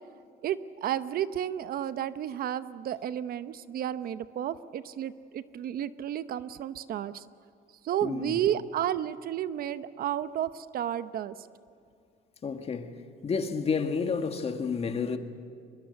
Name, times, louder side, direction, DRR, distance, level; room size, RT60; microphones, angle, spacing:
voice 1, 0.4-7.2 7.8-11.3, right 10 dB, 60° right, 0.9 m, -32 dB
voice 2, 8.0-8.4 12.4-12.9 13.2-15.2, left 5 dB, 35° left, 1.9 m, -30 dB
24.0 x 21.5 x 8.0 m
cardioid pair, 110°, 17 cm